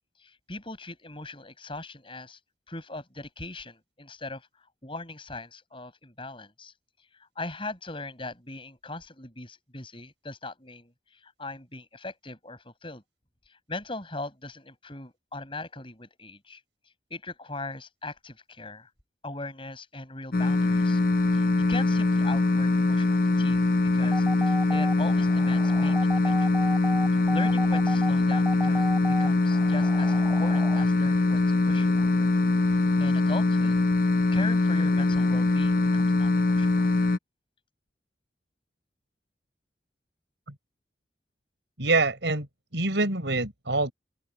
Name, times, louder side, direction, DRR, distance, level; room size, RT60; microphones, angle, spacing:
voice 1, 0.2-2.4 2.7-6.7 7.2-13.0 13.5-16.6 17.1-18.9 19.2-21.0 21.3-23.6 23.9-26.7 27.1-32.3 33.0-33.9 34.3-36.9, left 2 dB, 30° left, 7.6 m, -40 dB
sound 1, 20.3-37.2, left 2 dB, 50° left, 0.8 m, -23 dB
sound 2, 24.0-30.8, right 1 dB, 5° right, 3.0 m, -35 dB
voice 2, 41.8-42.5 42.7-43.9, right 3 dB, 75° right, 4.5 m, -25 dB
open air
head